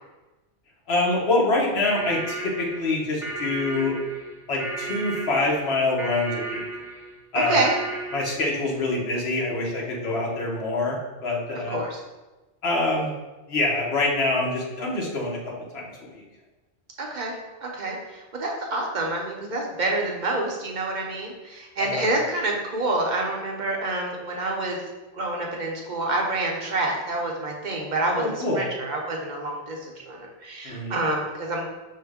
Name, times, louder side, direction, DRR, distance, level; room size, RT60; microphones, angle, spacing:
voice 1, 0.9-3.9 4.5-6.6 7.3-7.6 8.1-11.8 12.6-13.1 13.5-15.4 15.7-15.8 16.1-16.2 21.8-22.1 28.1-28.6 30.6-30.9, left 2 dB, 75° left, -2 dB, 1.2 m, -25 dB
sound 1, 1.8-8.6, right 3 dB, 5° right, 0.6 m, -34 dB
voice 2, 7.3-7.7 11.7-12.0 17.0-17.3 17.6-24.8 25.2-31.7, right 2 dB, 50° right, 0 dB, 0.8 m, -27 dB
5.5 x 2.1 x 3.5 m, 1.1 s
omnidirectional pair, 1.1 m